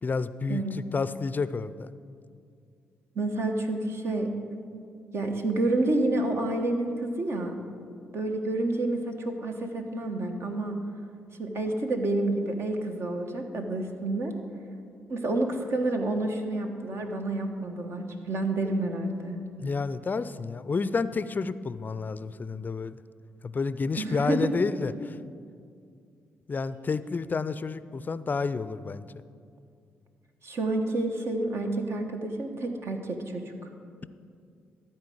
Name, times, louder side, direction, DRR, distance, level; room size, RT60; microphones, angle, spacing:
voice 1, 0.0-1.9 19.6-23.0 23.4-25.2 26.5-29.1, left 4 dB, 35° left, 15 dB, 0.4 m, -30 dB
voice 2, 3.1-4.3 5.1-7.6 8.1-10.8 11.4-14.3 15.1-19.4 23.9-24.5 30.4-33.4, right 2 dB, 55° right, 4 dB, 1.2 m, -29 dB
13.0 x 4.4 x 7.7 m, 2.3 s
hypercardioid pair, 50°, 5 cm